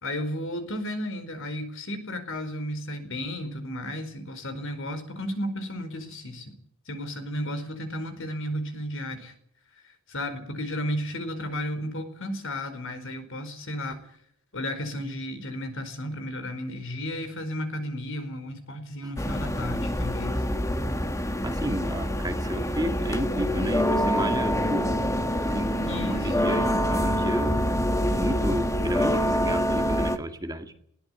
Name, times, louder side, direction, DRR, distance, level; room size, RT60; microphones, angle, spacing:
voice 1, 0.0-6.5 6.9-9.3 9.8-14.0 14.5-20.4 25.8-26.6, equal, 65° left, 9 dB, 4.7 m, -33 dB
sound 1, 19.2-30.2, equal, 15° left, 1.5 m, -26 dB
voice 2, 21.4-25.0 25.4-27.6 27.8-30.7, right 1 dB, 20° right, 6 dB, 2.0 m, -32 dB
20.5 x 17.5 x 9.8 m, 0.67 s
head